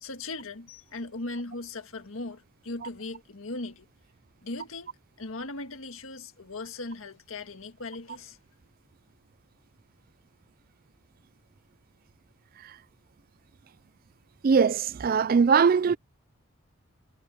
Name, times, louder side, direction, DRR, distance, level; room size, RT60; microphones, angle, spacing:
voice 1, 0.0-3.9 4.4-8.4, left 2 dB, 75° left, 1.7 m, -38 dB
voice 2, 14.4-16.0, right 6 dB, 45° right, 0.4 m, -21 dB
head